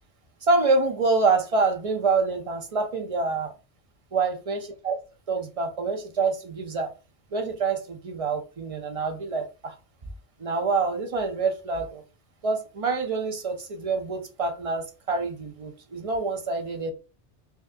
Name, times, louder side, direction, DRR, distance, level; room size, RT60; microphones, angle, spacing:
voice 1, 0.4-3.5 4.1-5.0 5.3-6.9 7.3-9.7 10.4-12.0 12.4-16.9, right 4 dB, 40° right, 0.6 m, -26 dB
4.9 x 2.5 x 2.6 m
omnidirectional pair, 1.2 m